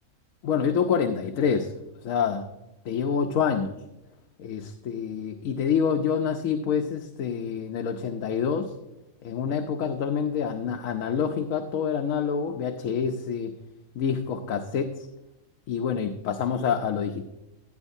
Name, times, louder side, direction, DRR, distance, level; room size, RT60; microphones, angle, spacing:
voice 1, 0.4-1.7 2.0-2.4 2.9-3.8 4.4-8.7 9.2-13.5 14.0-15.1 15.7-17.2, left 7 dB, 80° left, 5 dB, 1.1 m, -27 dB
12.0 x 10.5 x 2.6 m, 0.97 s
omnidirectional pair, 1.4 m